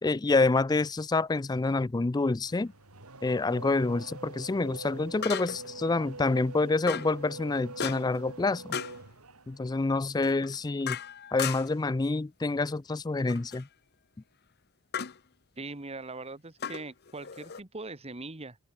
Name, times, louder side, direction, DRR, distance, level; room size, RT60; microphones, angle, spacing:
voice 1, 0.0-2.7 3.2-8.8 9.5-11.0 11.3-13.7, left 3 dB, 20° left, 0.4 m, -27 dB
sound 1, 1.5-1.7 5.2-5.8 6.9-7.2 7.8-8.2 8.7-9.0 10.2-11.9 13.3-13.7 14.9-15.2 16.6-17.6, left 8 dB, 45° left, 0.9 m, -36 dB
Race car auto racing / Accelerating revving vroom, 2.4-9.7, right 3 dB, 90° right, 3.9 m, -45 dB
voice 2, 15.6-18.6, right 3 dB, 30° right, 1.5 m, -41 dB
open air
head